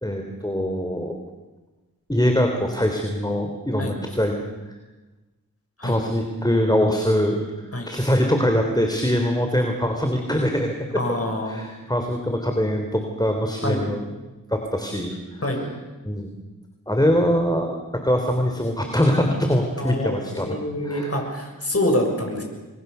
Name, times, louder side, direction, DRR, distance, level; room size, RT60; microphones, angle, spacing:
voice 1, 0.0-1.2 2.1-4.4 5.8-7.4 7.9-11.2 11.5-14.1 14.5-15.1 15.5-15.7 16.0-16.3 16.9-20.6 20.9-21.1, equal, 10° left, 4 dB, 3.4 m, -23 dB
voice 2, 11.0-11.7 13.6-13.8 15.4-15.6 19.8-22.4, left 1 dB, 45° left, 2 dB, 6.9 m, -26 dB
30.0 x 22.0 x 6.9 m, 1.2 s
wide cardioid pair, 45°, 34 cm